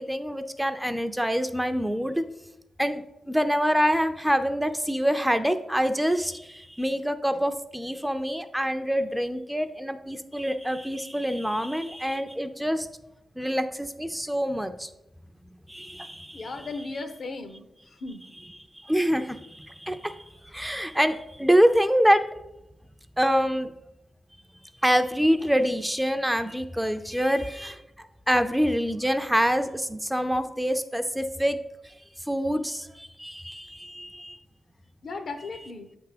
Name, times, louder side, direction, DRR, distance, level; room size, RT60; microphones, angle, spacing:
voice 1, 0.0-2.3 2.8-12.9 13.4-14.9 15.7-16.7 18.8-20.1 20.4-22.2 23.2-23.7 24.8-31.6 32.3-34.4, equal, 5° right, 8 dB, 0.4 m, -26 dB
voice 2, 16.3-17.6 18.0-18.2 35.0-35.9, left 3 dB, 65° left, 8 dB, 0.7 m, -36 dB
7.9 x 3.4 x 5.0 m, 0.90 s
cardioid pair, 75°, 0 cm